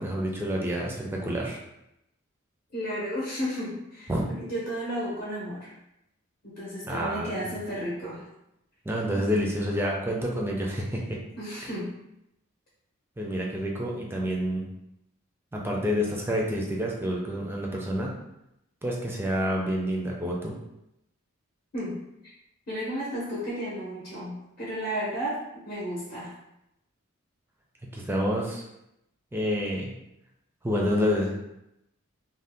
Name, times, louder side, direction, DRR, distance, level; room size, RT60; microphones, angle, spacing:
voice 1, 0.0-1.6 4.1-4.4 6.9-7.4 8.9-11.2 13.2-14.7 15.5-18.1 18.8-20.5 27.9-28.6 29.3-29.9 30.6-31.5, equal, 10° right, -2 dB, 0.4 m, -28 dB
voice 2, 2.7-5.7 6.4-8.2 11.4-11.9 21.7-22.0 22.7-25.4 25.6-26.3, equal, 45° left, -7 dB, 0.8 m, -33 dB
2.7 x 2.2 x 3.4 m, 0.85 s
head